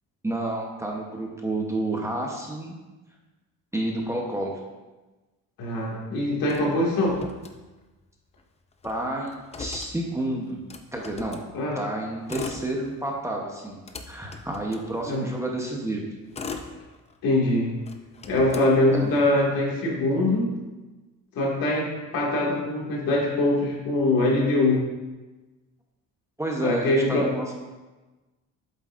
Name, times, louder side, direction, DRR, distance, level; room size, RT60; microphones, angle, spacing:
voice 1, 0.2-2.8 3.7-4.5 8.8-10.6 10.9-11.4 11.7-13.8 14.1-16.0 18.9-19.2 26.4-27.6, right 1 dB, 10° right, -1 dB, 0.8 m, -30 dB
voice 2, 5.6-7.2 11.5-11.8 15.0-15.2 17.2-17.7 18.3-20.5 21.3-24.8 26.6-27.3, left 1 dB, 75° left, -2 dB, 2.1 m, -23 dB
Motor vehicle (road), 6.5-8.1 8.4-8.5 8.7-11.5 12.1-13.2 13.6-15.4 16.0-17.4 17.8-19.4, left 4 dB, 20° left, 0.4 m, -40 dB
8.1 x 7.7 x 2.5 m, 1.2 s
cardioid pair, 150°, 36 cm